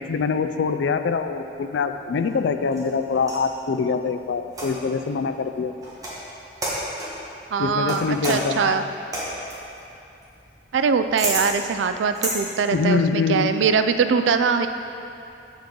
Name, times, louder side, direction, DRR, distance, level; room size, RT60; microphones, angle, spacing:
voice 1, 0.0-5.7 7.6-8.9 12.7-13.5, left 5 dB, 75° left, 9 dB, 0.4 m, -24 dB
sound 1, 2.2-3.5 4.5-5.0 5.8-6.2 6.6-7.2 7.9-12.4, right 1 dB, 20° right, 1.5 m, -31 dB
voice 2, 7.5-8.8 10.7-14.7, right 5 dB, 80° right, 9 dB, 0.4 m, -22 dB
7.5 x 7.1 x 3.7 m, 2.8 s
head